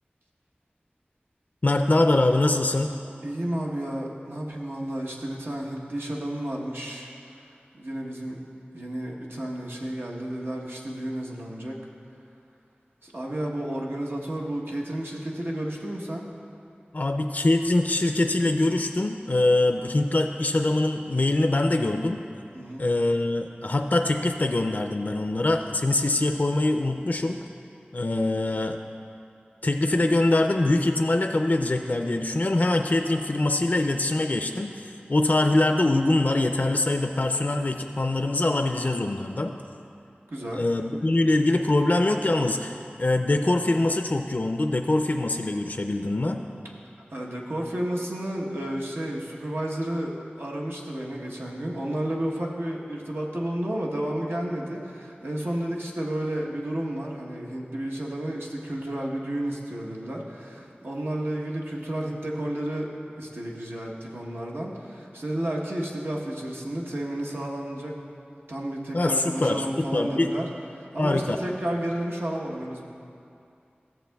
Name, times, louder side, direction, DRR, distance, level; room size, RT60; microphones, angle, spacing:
voice 1, 1.6-2.9 16.9-22.2 22.8-27.4 27.9-28.8 29.6-39.6 40.5-46.4 68.9-70.3 71.0-71.4, left 2 dB, 45° left, 5 dB, 0.3 m, -23 dB
voice 2, 3.2-7.1 7.8-8.4 8.7-11.8 13.0-16.3 22.5-22.9 40.3-40.6 47.1-62.9 63.2-67.9 68.5-70.5 70.7-72.9, right 1 dB, 85° right, -3 dB, 1.0 m, -32 dB
14.0 x 7.3 x 2.3 m, 2.5 s
wide cardioid pair, 40°, 4 cm